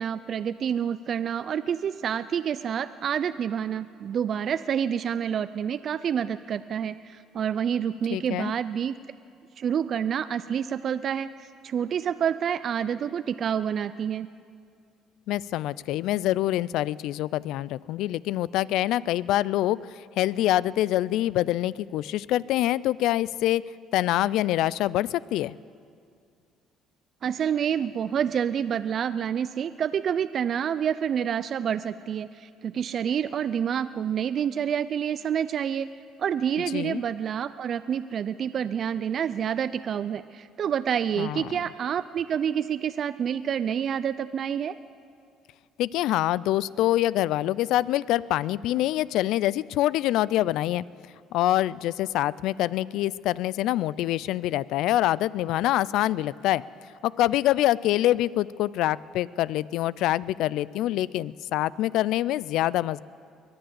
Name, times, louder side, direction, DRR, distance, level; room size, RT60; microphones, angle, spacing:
voice 1, 0.0-9.0 9.6-14.3 27.2-35.9 36.2-44.8, right 8 dB, 55° right, 13 dB, 0.4 m, -28 dB
voice 2, 8.1-8.5 15.3-23.6 23.9-25.6 36.7-37.0 41.2-41.5 45.8-50.8 51.3-56.6 57.0-63.0, left 14 dB, 75° left, 21 dB, 0.3 m, -25 dB
22.5 x 7.9 x 7.7 m, 2.3 s
supercardioid pair, 75°, 0 cm